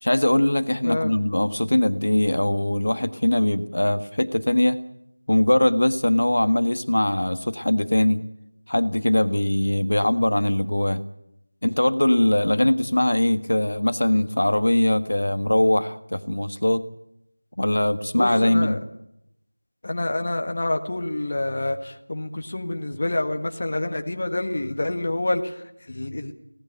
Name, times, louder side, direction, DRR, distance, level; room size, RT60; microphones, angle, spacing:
voice 1, 0.0-4.8 5.3-8.2 8.7-11.0 11.6-16.8 17.6-18.8, left 1 dB, 60° left, 12 dB, 1.5 m, -21 dB
voice 2, 0.8-1.2 18.2-18.8 19.8-26.3, left 2 dB, 25° left, 6 dB, 1.6 m, -27 dB
24.5 x 18.0 x 9.2 m, 0.81 s
figure-of-eight pair, 180°, 0 cm